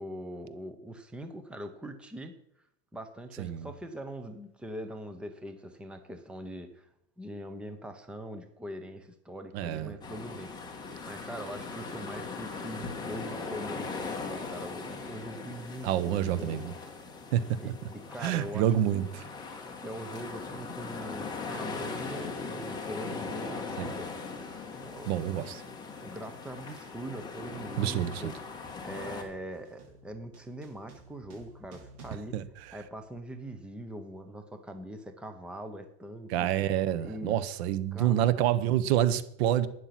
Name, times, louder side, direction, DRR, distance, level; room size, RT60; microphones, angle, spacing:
voice 1, 0.0-2.3 2.9-6.9 7.2-16.8 17.6-19.1 19.8-24.1 24.8-25.1 26.0-32.4 32.7-36.5 37.0-37.3 37.9-38.3, right 1 dB, 5° right, 0.8 m, -42 dB
voice 2, 9.5-9.9 15.8-16.6 17.3-17.4 18.2-19.0 23.8-24.0 25.1-25.6 27.8-28.3 32.3-32.4 36.3-39.7, right 11 dB, 70° right, 1.1 m, -27 dB
sound 1, 10.0-29.2, left 4 dB, 10° left, 1.8 m, -40 dB
sound 2, 28.4-33.4, right 3 dB, 45° right, 5.2 m, -57 dB
12.0 x 9.9 x 5.9 m
supercardioid pair, 165°, 33 cm